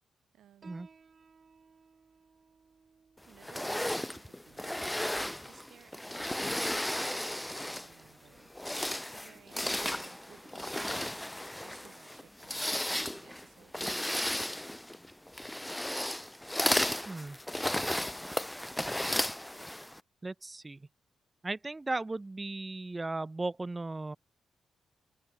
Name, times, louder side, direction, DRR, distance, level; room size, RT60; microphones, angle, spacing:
voice 1, 0.3-0.9 3.3-5.0 5.4-6.9 7.2-8.8 9.1-11.3 11.6-13.8, right 11 dB, 80° right, 6.7 m, -60 dB
Piano, 0.6-7.7, right 5 dB, 50° right, 2.1 m, -63 dB
sound 1, 3.4-8.0 8.5-20.0, left 1 dB, 10° left, 0.7 m, -34 dB
voice 2, 17.1-17.4 20.2-20.9 21.4-24.2, right 2 dB, 25° right, 0.4 m, -36 dB
open air
cardioid pair, 60°, 0 cm